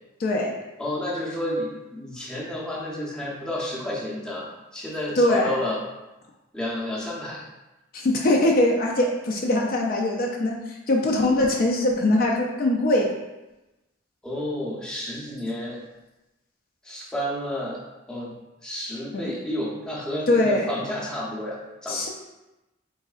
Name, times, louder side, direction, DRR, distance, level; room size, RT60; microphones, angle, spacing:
voice 1, 0.2-0.5 5.2-5.5 7.9-13.1 19.1-19.3 20.3-20.7 21.9-22.1, left 1 dB, 45° left, 0 dB, 0.4 m, -22 dB
voice 2, 0.8-5.8 6.5-7.4 14.2-15.8 16.8-17.8 18.1-18.4 18.6-22.1, left 1 dB, 5° left, -5 dB, 0.6 m, -31 dB
3.6 x 3.1 x 2.4 m, 1.0 s
head